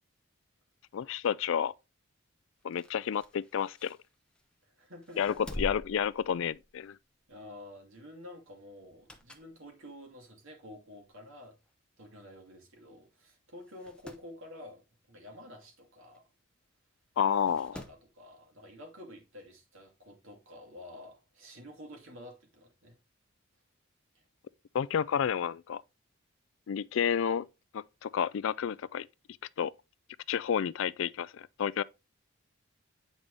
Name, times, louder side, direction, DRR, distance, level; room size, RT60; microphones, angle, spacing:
voice 1, 0.9-1.7 2.6-4.0 5.2-7.0 17.2-17.8 24.7-25.8 26.7-27.5 27.7-29.1 29.6-29.7 30.3-31.8, left 8 dB, 65° left, 0.3 m, -30 dB
sound 1, 2.6-4.6 5.0-6.9 7.3-7.5 8.8-9.6 10.1-10.2 11.0-11.1 11.4-11.5 11.7-11.8 12.6-12.8 13.1-13.2 13.6-14.3 16.1-16.2 17.3-18.1 19.4-19.5, left 1 dB, 5° left, 0.8 m, -46 dB
voice 2, 4.6-5.4 7.3-11.6 12.0-14.8 15.1-16.3 17.6-23.0, left 1 dB, 65° right, 2.6 m, -50 dB
8.7 x 5.3 x 3.3 m
head